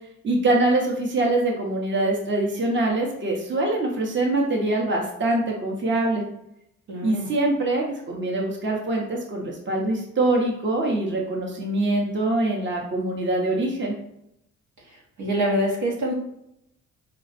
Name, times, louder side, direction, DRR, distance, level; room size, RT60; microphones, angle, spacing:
voice 1, 0.2-6.2 7.0-14.0, right 2 dB, 40° right, 0 dB, 1.0 m, -24 dB
voice 2, 6.9-7.4 14.9-16.1, equal, 85° right, -3 dB, 1.4 m, -26 dB
4.3 x 2.3 x 4.0 m, 0.80 s
cardioid pair, 90°, 30 cm